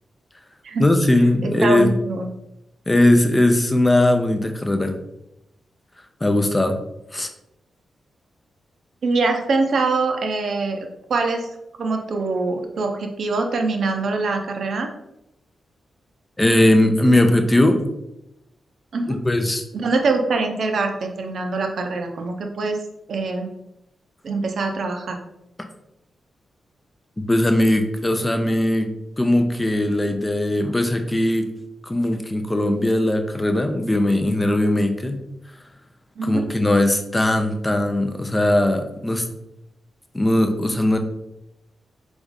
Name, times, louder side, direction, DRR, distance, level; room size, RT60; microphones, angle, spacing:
voice 1, 0.8-1.9 2.9-4.9 6.2-6.8 7.1-7.3 16.4-17.8 19.1-19.6 27.2-28.9 29.2-31.5 31.8-35.2 36.2-39.2 40.1-41.0, left 1 dB, 15° left, 6 dB, 0.4 m, -19 dB
voice 2, 1.4-2.3 9.0-11.5 11.8-14.9 18.9-19.2 19.7-22.8 23.1-23.5 24.2-25.2 36.2-36.4, right 3 dB, 60° right, 4 dB, 0.6 m, -24 dB
4.0 x 3.5 x 3.6 m, 0.86 s
wide cardioid pair, 135°, 0 cm